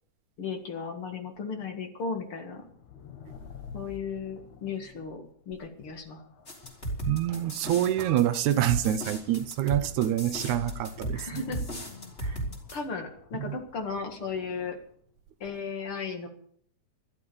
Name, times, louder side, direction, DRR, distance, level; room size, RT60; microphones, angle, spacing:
voice 1, 0.4-2.6 3.7-6.2 11.1-11.6 12.2-12.4 12.7-14.8 15.4-16.3, left 5 dB, 50° left, 2.5 m, -35 dB
sound 1, 2.5-15.1, left 5 dB, 70° left, 3.0 m, -49 dB
sound 2, 6.5-12.8, right 1 dB, 20° left, 3.6 m, -35 dB
voice 2, 7.1-11.4 12.2-12.3 13.4-13.5, right 12 dB, 80° right, 2.1 m, -26 dB
13.0 x 12.0 x 6.9 m
omnidirectional pair, 3.5 m